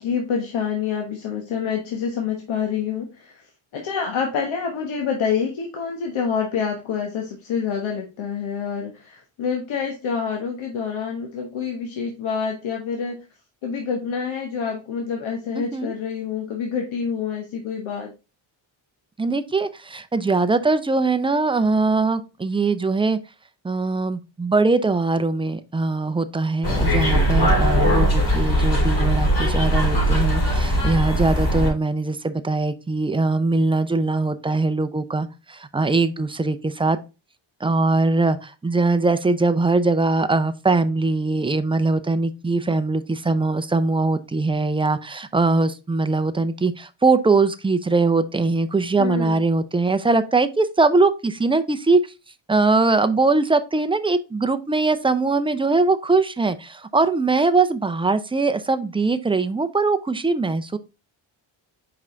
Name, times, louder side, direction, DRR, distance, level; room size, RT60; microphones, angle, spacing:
voice 1, 0.0-3.4 3.7-13.1 13.6-18.1 49.0-49.4, left 6 dB, 75° left, 1.3 m, -27 dB
voice 2, 15.5-15.9 19.2-23.2 23.6-37.0 37.6-52.0 52.5-60.8, right 3 dB, 10° right, 0.5 m, -21 dB
sound 1, 26.6-31.7, equal, 60° left, 3.8 m, -20 dB
5.3 x 4.9 x 3.8 m
cardioid pair, 110°, 48 cm